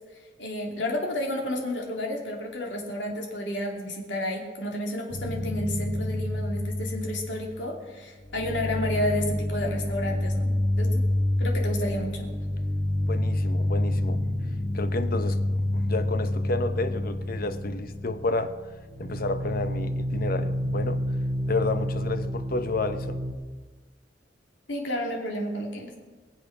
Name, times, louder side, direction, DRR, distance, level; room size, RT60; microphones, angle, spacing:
voice 1, 0.4-11.0 11.4-12.3 24.7-25.9, left 1 dB, 85° left, 0 dB, 2.8 m, -31 dB
sound 1, 5.1-7.9 8.2-23.3, left 1 dB, 5° right, 3.1 m, -28 dB
voice 2, 13.0-14.3 14.7-18.5 19.0-21.0 21.5-23.2, left 2 dB, 55° left, 10 dB, 0.9 m, -31 dB
23.0 x 7.7 x 6.0 m, 1.4 s
head